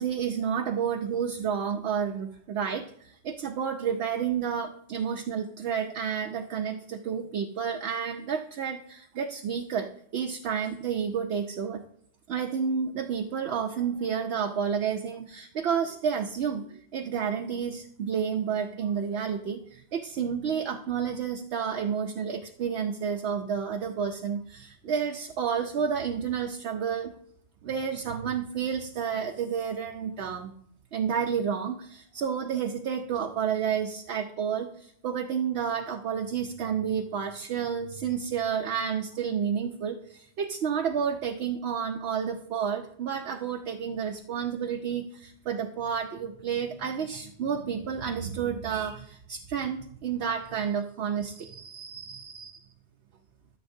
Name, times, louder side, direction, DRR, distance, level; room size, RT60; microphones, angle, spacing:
voice 1, 0.0-11.8 12.3-27.1 27.6-30.5 30.9-52.6, right 7 dB, 70° right, 4 dB, 0.8 m, -30 dB
13.5 x 7.0 x 2.7 m, 0.66 s
omnidirectional pair, 1.2 m